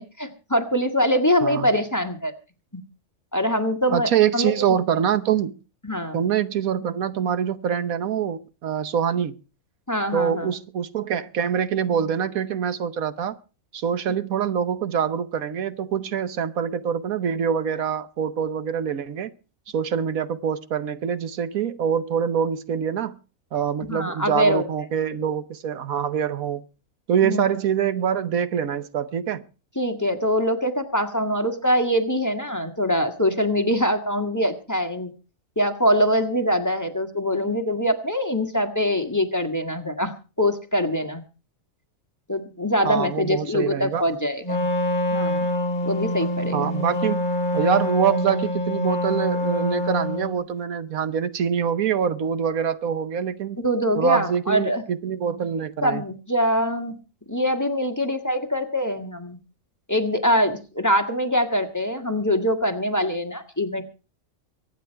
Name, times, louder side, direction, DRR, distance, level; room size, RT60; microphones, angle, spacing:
voice 1, 0.0-2.3 2.7-2.8 3.3-4.5 5.8-6.2 9.9-10.5 23.9-24.6 27.2-27.4 29.7-35.1 35.6-41.2 42.3-44.6 45.1-45.5 45.8-46.7 53.6-54.8 55.8-56.9 57.3-59.4 59.9-63.8, equal, 15° left, 1.5 m, -23 dB
voice 2, 3.9-5.5 6.1-9.3 10.1-13.4 13.7-19.3 19.7-23.1 23.5-26.6 27.1-29.4 42.8-44.1 46.5-47.2 47.5-53.6 54.0-56.0, right 8 dB, 75° right, 1.4 m, -25 dB
Wind instrument woodwind instrument, 44.4-50.4, left 1 dB, 35° left, 1.7 m, -25 dB
24.0 x 9.4 x 4.5 m
omnidirectional pair, 1.5 m